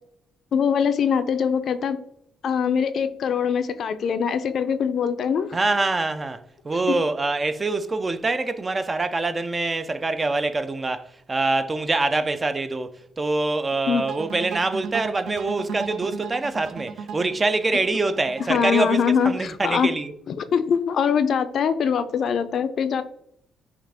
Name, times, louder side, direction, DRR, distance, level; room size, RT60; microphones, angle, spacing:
voice 1, 0.5-2.0 2.4-5.5 13.9-14.0 18.5-19.9 20.5-23.0, left 7 dB, 60° left, 0.4 m, -22 dB
voice 2, 5.5-20.1, right 3 dB, 25° right, 0.4 m, -25 dB
sound 1, 14.1-19.2, right 6 dB, 80° right, 0.5 m, -36 dB
5.9 x 2.4 x 3.4 m
cardioid pair, 90°, 0 cm